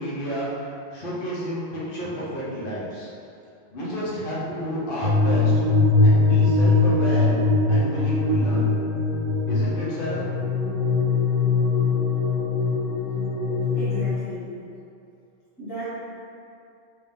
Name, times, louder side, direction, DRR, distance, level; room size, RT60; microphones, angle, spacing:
voice 1, 0.0-3.1 3.7-5.5 6.0-7.3 7.7-8.7 9.5-10.5, equal, 55° left, -7 dB, 1.0 m, -31 dB
sound 1, 5.0-14.1, left 3 dB, 50° right, 0.5 m, -21 dB
voice 2, 13.7-14.5 15.6-15.9, right 1 dB, 20° left, -14 dB, 1.0 m, -34 dB
3.4 x 2.8 x 3.5 m, 2.6 s
omnidirectional pair, 1.1 m